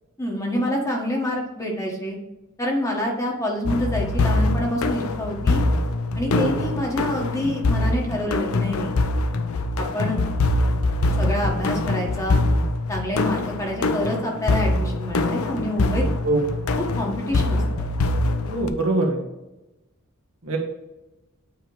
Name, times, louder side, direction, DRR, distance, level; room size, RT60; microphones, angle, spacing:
voice 1, 0.2-2.2 2.6-5.6 6.2-9.0 9.8-10.2 11.2-12.4 12.9-16.0 17.0-17.9, equal, 15° left, -1 dB, 1.5 m, -27 dB
sound 1, 3.7-18.7, left 2 dB, 75° left, 0.6 m, -23 dB
voice 2, 18.5-19.2 20.4-20.6, right 2 dB, 70° right, 0 dB, 1.5 m, -22 dB
8.8 x 3.4 x 4.8 m, 0.98 s
head